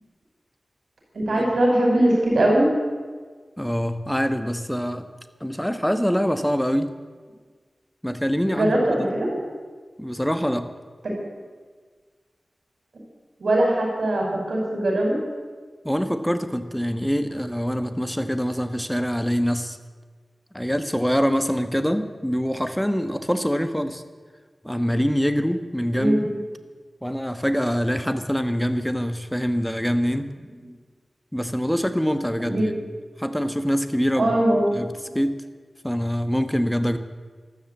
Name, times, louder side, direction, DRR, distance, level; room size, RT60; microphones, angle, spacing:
voice 1, 1.1-2.6 8.5-9.4 11.0-11.2 13.4-15.2 25.9-26.3 32.4-32.7 34.2-34.8, right 1 dB, 85° right, -2 dB, 5.9 m, -21 dB
voice 2, 3.6-5.1 5.4-6.9 8.0-9.1 10.0-10.7 15.8-19.8 20.5-24.0 24.6-26.3 27.0-30.3 31.3-32.7 33.2-34.3 34.7-35.4 35.8-37.0, equal, 5° left, 9 dB, 1.3 m, -24 dB
13.5 x 13.0 x 8.2 m, 1.5 s
wide cardioid pair, 65°, 0 cm